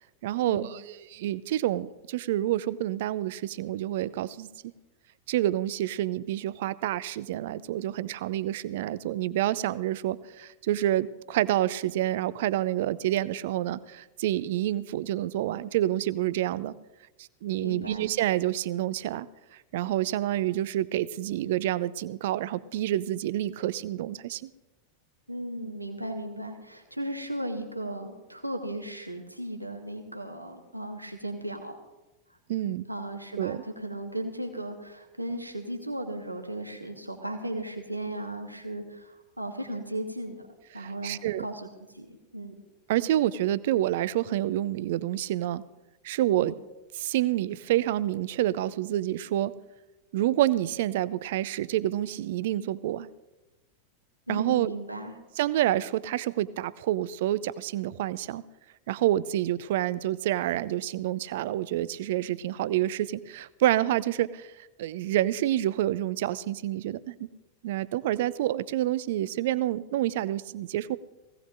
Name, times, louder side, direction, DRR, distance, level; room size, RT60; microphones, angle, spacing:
voice 1, 0.2-4.5 5.3-16.8 17.4-19.3 19.7-24.5 32.5-32.8 33.4-33.6 40.8-41.5 42.9-45.6 46.0-46.6 46.9-49.5 50.1-53.1 54.3-54.8 55.4-58.4 58.9-67.2 67.6-71.0, right 13 dB, 55° right, 18 dB, 0.5 m, -28 dB
voice 2, 17.6-18.1 25.3-31.8 32.9-40.4 40.7-41.7 41.9-42.5 46.3-46.5 54.3-55.1, right 1 dB, 85° right, 3 dB, 1.5 m, -36 dB
19.5 x 16.5 x 2.6 m, 1.1 s
figure-of-eight pair, 90°, 0 cm